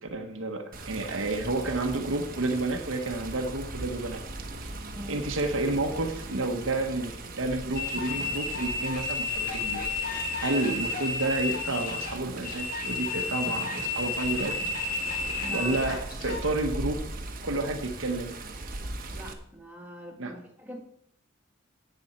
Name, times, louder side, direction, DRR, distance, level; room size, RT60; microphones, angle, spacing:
voice 1, 0.0-4.2 4.6-4.7 5.1-9.8 10.4-14.5 15.5-17.0 17.4-18.3 20.2-20.3, right 2 dB, 65° right, 5 dB, 1.2 m, -30 dB
Water, 0.7-19.3, right 2 dB, 45° right, 1.2 m, -39 dB
voice 2, 4.9-5.3 15.4-15.8 19.1-20.8, equal, 10° right, 0 dB, 1.9 m, -43 dB
sound 1, 7.7-16.4, left 4 dB, 45° left, 4.3 m, -32 dB
10.5 x 8.8 x 4.4 m, 0.69 s
head